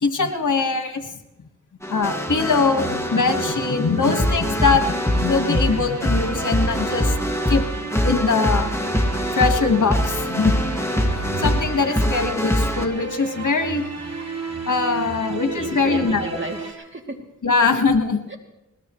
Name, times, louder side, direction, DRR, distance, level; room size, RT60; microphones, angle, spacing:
voice 1, 0.0-1.0 1.9-7.1 7.5-8.7 9.4-10.5 11.4-13.8 14.7-16.2 17.4-18.2, left 4 dB, 75° left, 5 dB, 1.8 m, -22 dB
sound 1, 1.8-12.9, equal, 10° left, 2.2 m, -24 dB
voice 2, 2.3-2.6 11.9-12.1 15.5-17.2 18.3-18.4, right 2 dB, 40° right, 2 dB, 2.8 m, -33 dB
sound 2, 2.3-16.7, right 3 dB, 55° right, 3.0 m, -34 dB
21.0 x 20.0 x 3.2 m, 0.89 s
cardioid pair, 40°, 31 cm